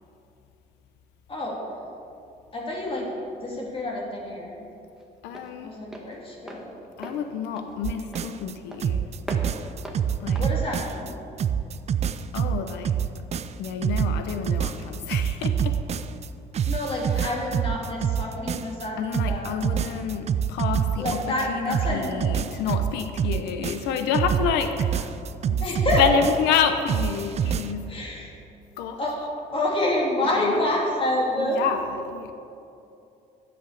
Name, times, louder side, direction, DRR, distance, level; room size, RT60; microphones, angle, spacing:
voice 1, 1.3-1.6 2.5-3.1 3.4-4.6 5.6-6.8 10.4-11.1 16.7-19.5 20.9-22.1 25.6-26.0 27.9-28.3 29.0-29.2 29.5-31.6, left 1 dB, 30° left, -3 dB, 3.1 m, -28 dB
Walk footsteps, 3.1-11.8, equal, 5° right, 1.5 m, -42 dB
voice 2, 5.2-5.8 7.0-9.0 10.2-10.4 12.3-13.0 13.6-15.7 17.1-17.3 19.0-25.2 25.5-25.6 26.0-27.9 28.8-29.0 30.3-30.6 31.4-32.3, left 7 dB, 90° left, 8 dB, 0.8 m, -28 dB
sound 1, 7.8-8.5 8.8-11.1 11.4-16.3 16.5-18.9 19.1-21.4 21.7-26.6 26.9-27.7, right 8 dB, 40° right, 0.5 m, -26 dB
11.5 x 8.0 x 6.9 m, 2.7 s
cardioid pair, 110°, 17 cm